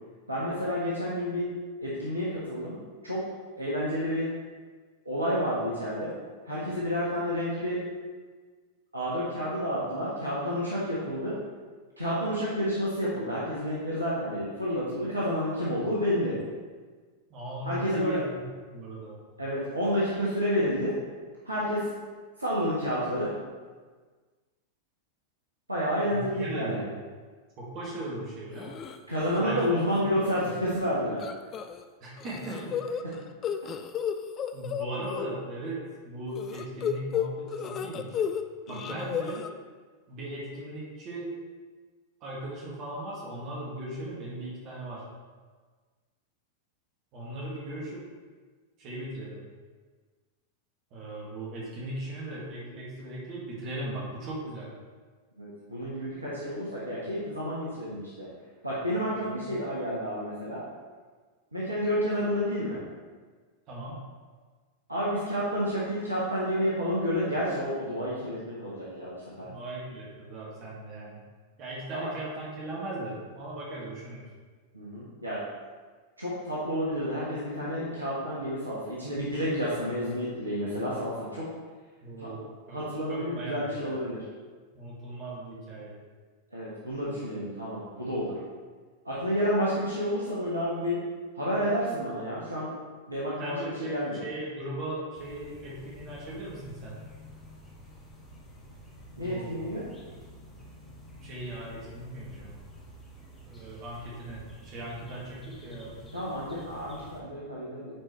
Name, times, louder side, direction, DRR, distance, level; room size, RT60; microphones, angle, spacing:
voice 1, 0.3-1.5 1.8-2.8 3.0-3.2 3.6-4.3 5.0-6.1 6.4-7.8 8.9-11.4 12.0-16.4 17.6-18.2 19.4-20.9 21.4-21.9 22.4-23.3 25.7-26.8 29.1-31.2 38.7-38.9 55.4-58.3 58.6-60.6 61.5-62.8 64.9-69.5 71.9-72.1 74.7-75.4 76.2-81.5 82.2-82.3 82.7-84.2 86.5-88.4 89.0-91.0 91.3-92.7 93.1-94.2 99.2-99.8 106.1-107.9, equal, 80° right, -7 dB, 1.3 m, -30 dB
voice 2, 17.3-18.4 18.7-19.2 26.1-26.9 27.6-28.8 29.4-30.5 32.0-33.0 34.5-38.3 38.7-39.4 40.1-41.3 42.2-45.0 47.1-48.0 48.8-49.5 50.9-54.7 59.1-59.5 63.7-64.0 69.4-71.2 71.6-74.3 82.0-82.8 83.1-84.0 84.7-85.9 93.4-97.0 99.2-99.6 101.2-102.5 103.4-106.0, right 1 dB, 40° right, -5 dB, 2.0 m, -38 dB
sound 1, 28.6-29.0 29.4-29.7 29.9-30.0 31.2-31.8 32.2-35.2 36.4-38.4 38.7-39.5, left 8 dB, 30° left, 0.4 m, -32 dB
sound 2, 95.1-107.2, left 1 dB, 10° left, 1.7 m, -49 dB
9.3 x 4.6 x 3.2 m, 1.4 s
figure-of-eight pair, 90°, 0 cm